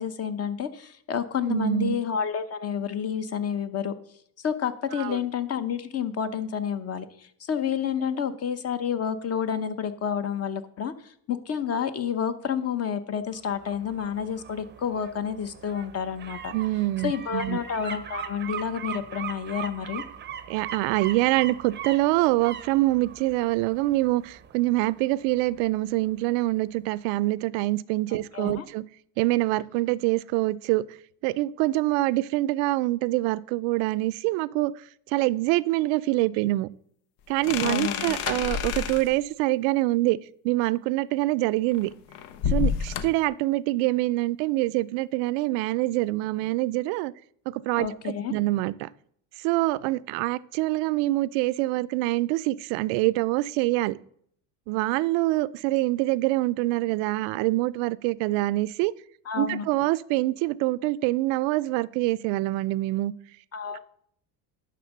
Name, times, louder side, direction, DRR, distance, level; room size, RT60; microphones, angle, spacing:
voice 1, 0.0-3.9 4.4-16.5 17.0-20.0 28.3-28.7 37.6-38.1 47.8-48.3 59.3-59.7 63.5-63.8, left 8 dB, 35° left, 0.8 m, -29 dB
voice 2, 1.5-1.9 4.9-5.2 16.5-17.6 20.5-28.8 29.2-30.8 31.2-34.7 35.1-36.7 37.3-40.2 40.4-41.9 42.5-47.1 47.5-48.9 49.4-54.0 54.7-58.9 59.4-63.1, right 18 dB, 80° right, 0.5 m, -25 dB
sound 1, 13.3-26.2 26.5-26.6, right 8 dB, 25° right, 0.6 m, -41 dB
sound 2, 37.4-39.2 41.7-43.3, left 7 dB, 80° left, 0.8 m, -29 dB
11.0 x 3.7 x 6.4 m
supercardioid pair, 110°, 44 cm